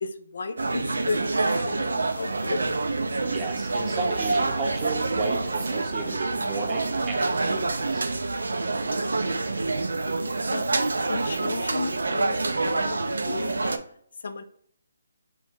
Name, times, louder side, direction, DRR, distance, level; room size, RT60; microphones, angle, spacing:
voice 1, 0.0-2.6 10.5-10.8 11.1-13.8 14.2-14.4, left 4 dB, 60° left, 9 dB, 0.3 m, -35 dB
sound 1, 0.6-13.8, right 3 dB, 80° right, 0.4 m, -27 dB
voice 2, 3.2-8.1, right 4 dB, 25° right, 2 dB, 0.6 m, -33 dB
3.1 x 2.6 x 3.5 m, 0.64 s
figure-of-eight pair, 150°, 0 cm